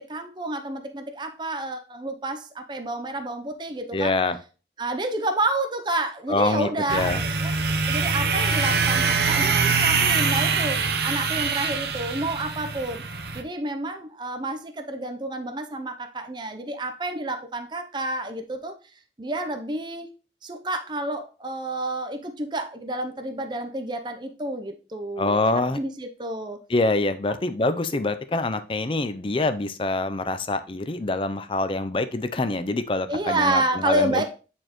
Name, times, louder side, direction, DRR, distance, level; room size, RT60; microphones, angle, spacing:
voice 1, 0.0-4.1 4.8-7.5 7.9-13.0 13.3-18.7 19.2-20.1 20.4-26.6 33.1-34.2, right 2 dB, 25° right, 6 dB, 0.6 m, -29 dB
voice 2, 3.9-4.4 6.3-7.2 25.2-25.8 26.7-34.2, left 2 dB, 30° left, 11 dB, 0.5 m, -25 dB
sound 1, 6.9-13.4, right 5 dB, 65° right, 0.7 m, -24 dB
8.9 x 4.3 x 3.0 m, 0.35 s
head